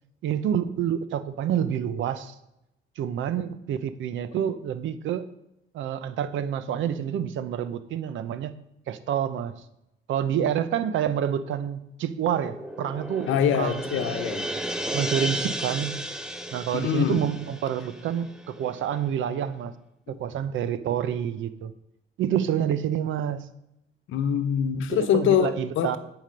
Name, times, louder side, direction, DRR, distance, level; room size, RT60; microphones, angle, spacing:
voice 1, 0.2-2.4 3.0-5.3 5.7-8.5 8.9-9.6 10.1-14.2 14.9-16.0 16.5-19.7 20.1-21.7 22.2-23.5 24.9-26.0, right 9 dB, 80° right, 13 dB, 0.7 m, -28 dB
sound 1, 12.2-18.8, right 1 dB, 5° right, 0.8 m, -34 dB
voice 2, 13.3-14.5 16.7-17.2 20.1-20.2 24.1-26.0, left 8 dB, 80° left, 9 dB, 0.9 m, -24 dB
10.5 x 5.1 x 5.2 m, 0.83 s
cardioid pair, 90°, 20 cm